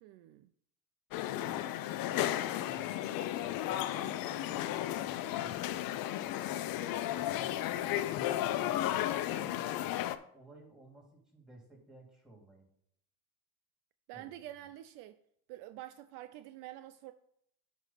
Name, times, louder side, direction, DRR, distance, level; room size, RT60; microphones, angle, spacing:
voice 1, 0.0-0.5 14.1-15.2 15.5-17.1, right 14 dB, 60° right, 0.5 m, -47 dB
sound 1, 1.1-10.2, left 13 dB, 50° left, 0.6 m, -34 dB
voice 2, 1.3-3.0 3.3-5.8 6.4-8.9 9.3-10.0 10.3-12.7 14.1-14.4, right 2 dB, ahead, 2.6 m, -55 dB
9.1 x 3.1 x 5.8 m
supercardioid pair, 100°, 46 cm